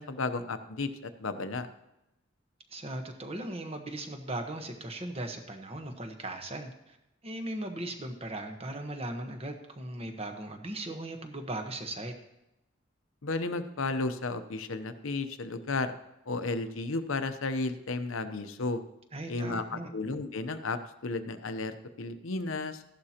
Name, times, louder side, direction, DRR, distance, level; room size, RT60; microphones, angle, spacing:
voice 1, 0.0-1.7 13.2-15.9 16.3-18.8 19.3-22.8, left 3 dB, 85° left, 10 dB, 0.8 m, -33 dB
voice 2, 2.7-7.0 7.2-12.1 19.1-19.9, right 1 dB, 30° right, 4 dB, 1.2 m, -38 dB
15.0 x 11.5 x 2.9 m, 0.90 s
head